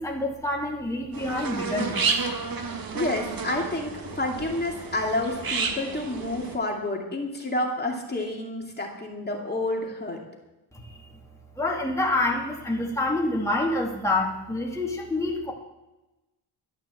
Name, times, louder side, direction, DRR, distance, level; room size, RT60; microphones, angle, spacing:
voice 1, 0.0-2.1 10.7-11.0 11.6-15.5, left 2 dB, 5° left, -2 dB, 2.4 m, -27 dB
sound 1, 1.1-6.6, right 4 dB, 55° right, 1.9 m, -31 dB
voice 2, 2.9-10.2, left 2 dB, 25° left, 0 dB, 2.5 m, -29 dB
12.0 x 11.0 x 7.7 m, 1.0 s
cardioid pair, 105°, 43 cm